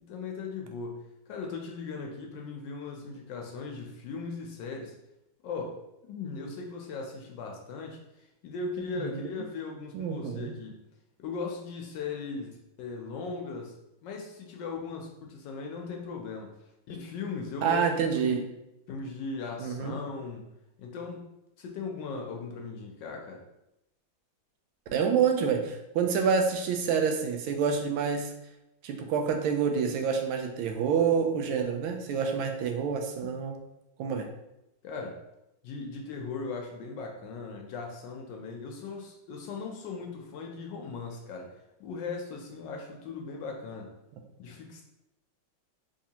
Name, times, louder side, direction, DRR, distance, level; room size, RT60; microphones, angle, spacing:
voice 1, 0.1-4.9 5.4-5.8 6.1-10.7 11.2-12.5 12.8-13.8 14.0-16.5 16.9-18.5 18.9-20.4 20.8-21.2 21.6-23.4 34.8-35.2 35.6-43.9 44.4-44.8, left 4 dB, 75° left, 1 dB, 1.1 m, -38 dB
voice 2, 9.9-10.6 17.6-18.5 19.6-20.0 24.9-28.3 28.8-33.6 34.0-34.3, right 6 dB, 90° right, 4 dB, 1.4 m, -27 dB
3.6 x 3.2 x 2.8 m, 0.88 s
omnidirectional pair, 2.2 m